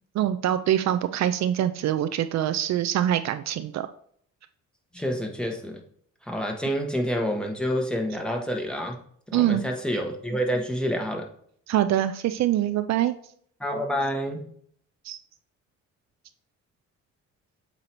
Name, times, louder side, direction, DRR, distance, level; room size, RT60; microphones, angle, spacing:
voice 1, 0.1-3.9 9.3-9.6 11.7-13.1 15.0-15.2, right 11 dB, 65° right, 11 dB, 0.4 m, -24 dB
voice 2, 4.9-5.8 6.3-9.0 9.3-11.3 13.6-14.5, equal, 5° left, 2 dB, 1.2 m, -28 dB
7.8 x 2.8 x 4.5 m, 0.63 s
cardioid pair, 90°, 30 cm